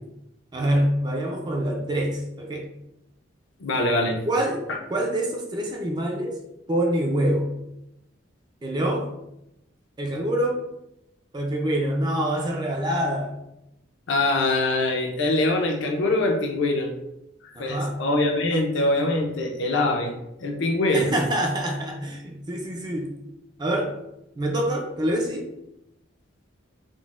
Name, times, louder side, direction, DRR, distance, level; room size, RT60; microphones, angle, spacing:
voice 1, 0.5-2.7 4.2-4.6 4.9-6.4 6.7-7.5 8.6-9.1 10.0-10.6 11.3-13.3 17.6-18.0 20.9-23.1 23.6-23.9 24.4-25.5, right 1 dB, 20° right, 1 dB, 0.3 m, -25 dB
voice 2, 3.6-4.2 4.7-4.8 14.1-16.9 17.4-20.1 20.4-21.2, left 2 dB, 65° left, 2 dB, 0.5 m, -23 dB
3.8 x 2.0 x 2.4 m, 0.87 s
head